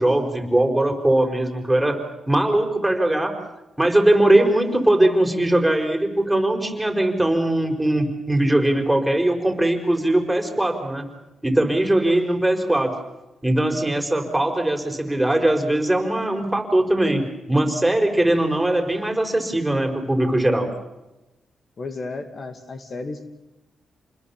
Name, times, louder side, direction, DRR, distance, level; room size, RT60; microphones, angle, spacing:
voice 1, 0.0-3.3 3.8-11.1 11.4-12.9 13.4-20.7, right 1 dB, 5° right, 4 dB, 5.1 m, -20 dB
voice 2, 21.8-23.2, left 3 dB, 45° left, 7 dB, 2.5 m, -33 dB
28.5 x 21.0 x 7.4 m, 0.98 s
cardioid pair, 90°, 0 cm